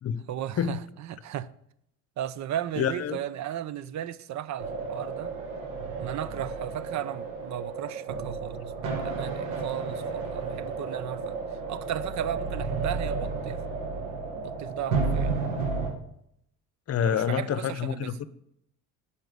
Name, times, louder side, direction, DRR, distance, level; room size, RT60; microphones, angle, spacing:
voice 1, 0.3-1.5 2.2-5.3 6.0-11.4 11.7-13.6 14.3-15.6 17.0-18.1, right 11 dB, 50° right, 0.7 m, -35 dB
voice 2, 2.8-3.2 16.9-18.3, left 8 dB, 40° left, 0.9 m, -27 dB
sound 1, 4.6-15.9, right 4 dB, 90° right, 1.9 m, -32 dB
9.0 x 5.8 x 8.1 m
supercardioid pair, 80°, 36 cm